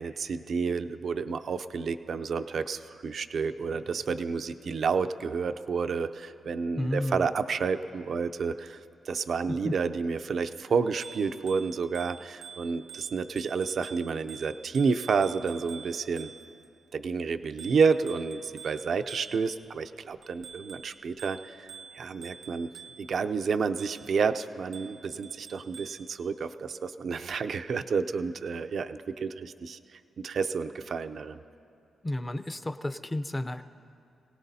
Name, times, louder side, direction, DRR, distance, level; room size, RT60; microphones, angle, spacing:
voice 1, 0.0-8.8 9.1-16.3 16.9-21.7 21.9-22.7 23.0-31.4, right 5 dB, 60° right, 9 dB, 0.5 m, -30 dB
voice 2, 6.8-7.3 9.6-9.7 32.0-33.6, left 1 dB, 15° left, 10 dB, 0.6 m, -32 dB
Bicycle bell, 10.9-16.7 17.6-19.7 20.2-23.2 23.8-24.2 24.7-26.1, right 6 dB, 90° right, 0.8 m, -48 dB
27.5 x 18.0 x 2.7 m, 2.6 s
cardioid pair, 110°, 0 cm